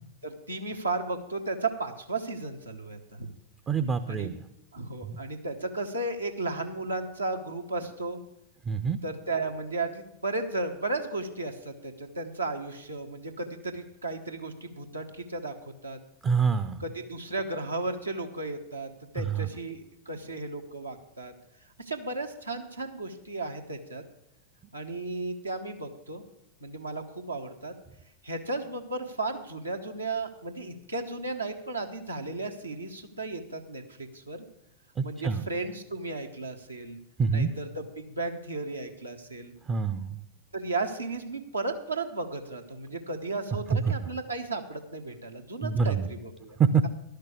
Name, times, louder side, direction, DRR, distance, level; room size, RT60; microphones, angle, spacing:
voice 1, 0.2-3.3 4.1-4.3 4.7-8.2 9.0-15.5 15.8-16.0 16.8-18.9 19.1-21.3 21.8-24.0 24.7-26.2 26.6-27.7 28.2-34.5 35.0-37.0 37.3-39.5 40.5-46.6, right 2 dB, 80° right, 3 dB, 1.2 m, -34 dB
voice 2, 3.7-4.4 5.1-5.2 8.7-9.0 16.2-16.8 19.2-19.5 35.0-35.4 37.2-37.5 39.7-40.0 45.6-46.0 46.6-46.8, right 6 dB, 25° right, 8 dB, 0.5 m, -26 dB
12.0 x 6.6 x 8.3 m, 0.84 s
figure-of-eight pair, 90°, 0 cm